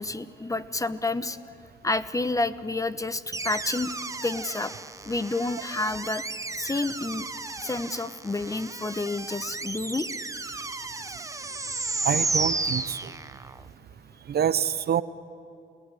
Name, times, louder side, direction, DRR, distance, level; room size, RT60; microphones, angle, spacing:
voice 1, 0.0-1.4 1.8-3.9 4.2-4.7 5.1-6.2 6.6-7.3 7.6-10.1, left 2 dB, 15° left, 14 dB, 0.9 m, -29 dB
sound 1, 3.3-13.6, right 3 dB, 15° right, 0.9 m, -33 dB
voice 2, 12.0-12.8 14.3-15.0, right 9 dB, 55° right, 15 dB, 0.8 m, -25 dB
30.0 x 16.0 x 10.0 m, 2.5 s
cardioid pair, 90°, 20 cm